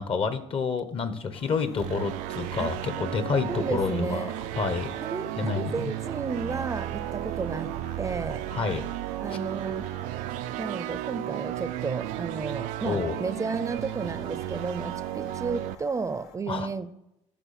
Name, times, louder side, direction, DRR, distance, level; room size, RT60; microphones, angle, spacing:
voice 1, 0.0-4.3 4.6-4.9 5.4-5.9 8.5-8.9 12.8-13.2 16.5-16.7, left 5 dB, 45° left, 11 dB, 1.1 m, -29 dB
sound 1, 1.3-16.4, left 6 dB, 80° left, 1.3 m, -49 dB
sound 2, 1.8-15.7, right 14 dB, 80° right, 0.5 m, -34 dB
voice 2, 3.5-4.4 5.0-8.5 9.2-10.0 10.6-16.9, right 4 dB, 25° right, 13 dB, 0.6 m, -33 dB
10.0 x 6.5 x 4.3 m, 0.84 s
supercardioid pair, 95°, 13 cm